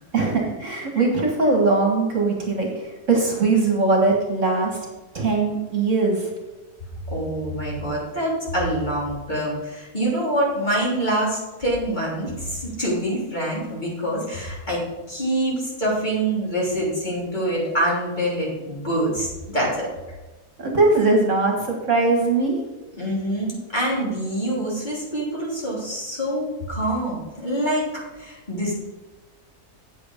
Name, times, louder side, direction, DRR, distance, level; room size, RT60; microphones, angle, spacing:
voice 1, 0.1-4.8 5.1-6.3 20.6-22.6, right 3 dB, 50° right, 0 dB, 1.9 m, -20 dB
voice 2, 7.1-19.3 19.5-19.9 23.0-28.7, right 1 dB, 30° left, -5 dB, 3.4 m, -25 dB
8.7 x 7.9 x 5.2 m, 1.2 s
omnidirectional pair, 1.7 m